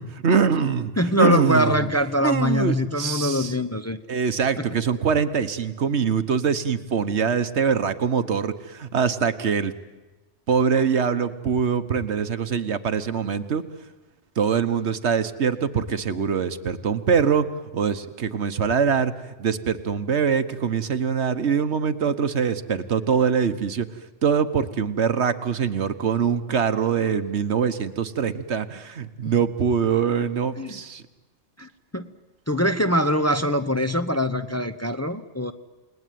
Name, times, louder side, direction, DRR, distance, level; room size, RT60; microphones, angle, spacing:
voice 1, 0.0-0.9 1.2-1.9 2.2-3.5 4.1-9.7 10.5-13.6 14.4-17.5 17.7-23.9 24.2-31.0, right 6 dB, 70° right, 1.4 m, -23 dB
voice 2, 1.0-4.0 4.6-4.7 30.6-30.8 31.6-32.1 32.5-35.5, left 1 dB, 15° left, 0.8 m, -23 dB
29.5 x 20.0 x 9.3 m
omnidirectional pair, 1.2 m